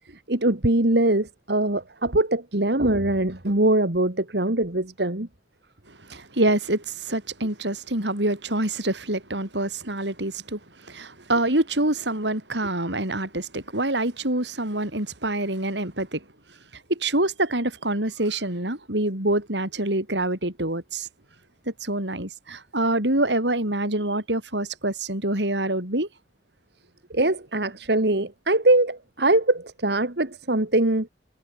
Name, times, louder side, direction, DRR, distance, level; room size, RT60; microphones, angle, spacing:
voice 1, 0.3-5.3 6.1-6.2 27.1-31.1, right 2 dB, 65° right, 2.3 m, -22 dB
voice 2, 6.1-16.2 16.9-21.1 21.7-26.1, right 1 dB, 85° right, 7.2 m, -26 dB
head